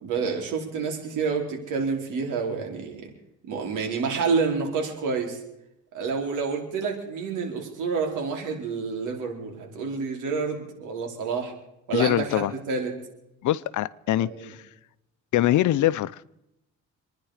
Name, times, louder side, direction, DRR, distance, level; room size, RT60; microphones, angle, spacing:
voice 1, 0.0-3.1 3.5-5.4 5.9-11.5 11.9-12.9 14.3-14.5, right 5 dB, 85° right, 1 dB, 4.4 m, -28 dB
voice 2, 11.9-12.5 13.4-14.6 15.3-16.2, left 14 dB, 75° left, 16 dB, 0.8 m, -23 dB
27.0 x 10.5 x 5.0 m, 0.85 s
cardioid pair, 90°, 30 cm